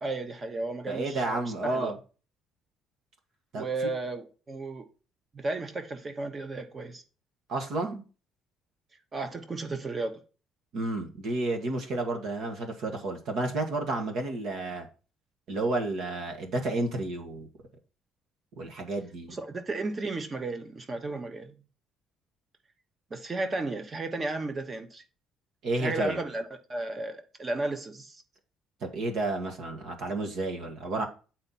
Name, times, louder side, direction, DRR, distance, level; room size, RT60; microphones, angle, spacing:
voice 1, 0.0-1.9 3.5-4.9 5.3-7.0 9.1-10.2 19.3-21.6 23.1-25.0 25.8-28.2, right 2 dB, 20° right, 1.0 m, -34 dB
voice 2, 0.9-2.0 3.5-3.7 7.5-8.0 10.7-14.9 15.5-17.5 18.6-19.3 25.6-26.2 28.9-31.1, right 2 dB, 60° right, 1.8 m, -31 dB
8.8 x 4.5 x 4.2 m
cardioid pair, 165°, 0 cm